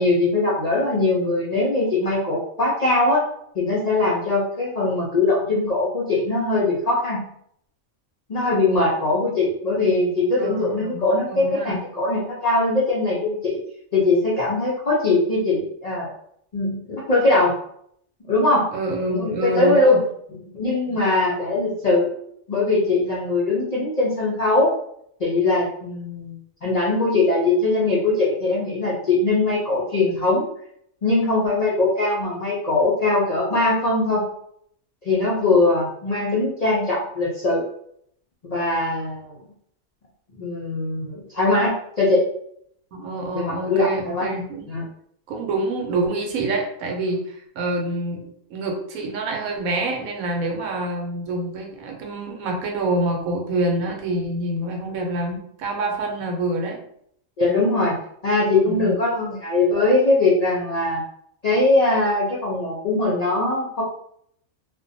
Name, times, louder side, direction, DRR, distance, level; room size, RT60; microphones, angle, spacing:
voice 1, 0.0-3.2 3.5-7.2 8.3-13.6 13.9-16.1 16.5-17.5 18.2-18.7 19.1-20.0 20.5-22.1 22.5-24.7 25.2-30.5 31.0-34.3 35.0-37.7 38.4-39.4 40.4-42.2 43.3-44.3 44.7-44.8 57.4-58.0 58.2-61.0 61.4-63.8, left 2 dB, 65° left, -5 dB, 0.4 m, -21 dB
voice 2, 10.4-11.8 18.7-20.0 20.9-21.0 42.9-44.7 45.3-56.8 58.6-58.9, right 2 dB, 90° right, 1 dB, 1.1 m, -27 dB
2.5 x 2.1 x 2.6 m, 0.69 s
omnidirectional pair, 1.4 m